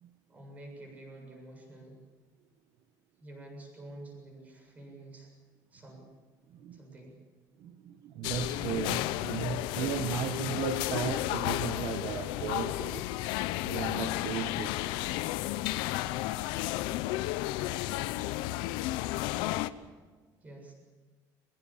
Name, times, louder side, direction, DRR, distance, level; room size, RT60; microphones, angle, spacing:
voice 1, 0.3-2.0 3.2-5.3 5.7-6.1 6.7-7.2 20.4-20.7, right 1 dB, 20° right, 2 dB, 7.3 m, -48 dB
voice 2, 7.6-13.0 13.6-14.9, right 8 dB, 50° right, 7 dB, 1.2 m, -36 dB
sound 1, 8.2-19.7, left 16 dB, 85° left, 0.9 m, -32 dB
23.0 x 21.5 x 7.3 m, 1.4 s
cardioid pair, 175°, 8 cm